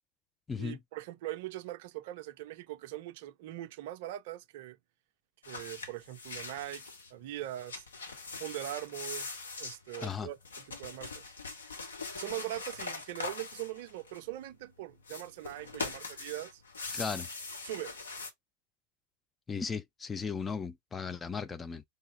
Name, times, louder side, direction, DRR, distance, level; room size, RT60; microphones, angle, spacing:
voice 1, 0.5-4.8 5.5-7.8 8.4-9.3 9.6-11.2 12.1-16.6 17.6-18.0, right 14 dB, 50° right, 0.5 m, -41 dB
sound 1, 5.4-7.1 7.5-14.5 15.0-18.3, left 4 dB, 70° left, 0.7 m, -42 dB
voice 2, 16.9-17.3 19.5-21.8, left 5 dB, 15° left, 0.3 m, -36 dB
3.2 x 2.6 x 3.2 m
figure-of-eight pair, 90°, 0 cm